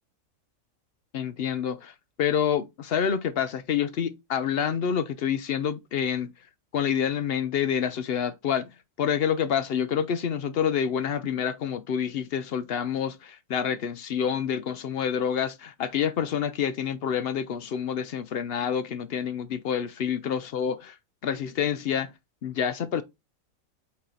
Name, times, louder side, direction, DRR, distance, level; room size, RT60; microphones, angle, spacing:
voice 1, 1.1-6.3 6.7-8.7 9.0-21.0 21.2-22.1 22.4-23.0, left 8 dB, 60° left, 0.7 m, -28 dB
8.5 x 2.9 x 3.9 m
omnidirectional pair, 1.5 m